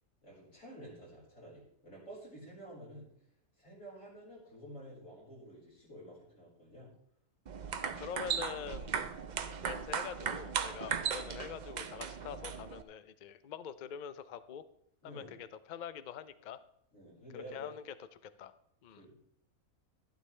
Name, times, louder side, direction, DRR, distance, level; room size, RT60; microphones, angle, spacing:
voice 1, 0.2-3.1 3.6-6.9 15.0-15.3 16.9-17.8 18.9-19.4, equal, 55° left, -5 dB, 4.9 m, -50 dB
sound 1, 7.5-12.8, right 7 dB, 80° right, 0.4 m, -37 dB
voice 2, 7.8-8.9 9.5-14.6 15.0-16.6 17.3-17.9 18.4-18.5 18.8-19.1, left 8 dB, 85° left, 13 dB, 0.4 m, -45 dB
11.5 x 11.5 x 3.3 m, 0.70 s
omnidirectional pair, 1.6 m